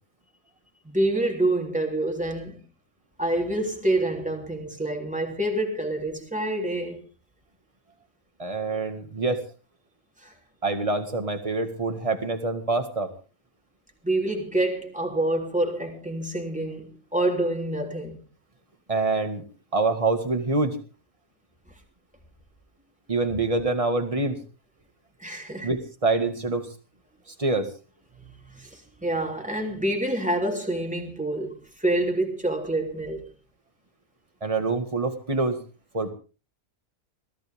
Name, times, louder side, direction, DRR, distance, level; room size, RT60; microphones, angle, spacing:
voice 1, 0.8-2.6 3.2-7.0 10.2-10.3 14.0-18.2 25.2-25.7 28.2-33.3, right 1 dB, 5° right, 3.3 m, -27 dB
voice 2, 8.4-9.4 10.6-13.1 18.9-19.4 19.7-20.8 23.1-24.4 25.6-26.7 27.4-27.7 34.4-35.6 35.9-36.1, right 3 dB, 25° right, 2.0 m, -25 dB
22.5 x 15.5 x 3.6 m
omnidirectional pair, 1.5 m